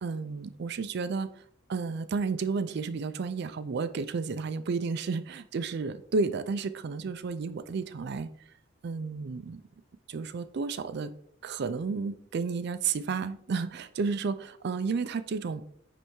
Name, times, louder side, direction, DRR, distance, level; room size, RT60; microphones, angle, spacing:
voice 1, 0.0-1.3 1.7-8.3 8.8-9.6 10.1-11.1 11.4-15.6, right 4 dB, 55° right, 12 dB, 0.4 m, -32 dB
9.5 x 3.4 x 3.0 m, 0.65 s
head